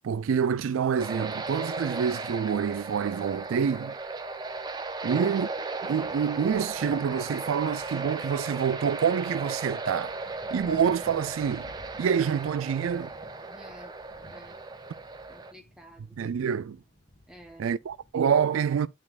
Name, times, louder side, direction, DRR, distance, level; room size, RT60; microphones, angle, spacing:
voice 1, 0.0-3.9 5.0-5.5 5.8-13.1 16.2-16.8 17.6-18.9, right 7 dB, 85° right, 0.4 m, -27 dB
sound 1, 1.0-15.5, right 3 dB, 20° right, 0.6 m, -36 dB
sound 2, 3.0-18.1, left 1 dB, 25° left, 1.7 m, -56 dB
voice 2, 13.5-13.9 14.3-14.6 15.3-16.3 17.3-17.7, equal, 5° right, 0.9 m, -51 dB
11.0 x 4.2 x 2.4 m
head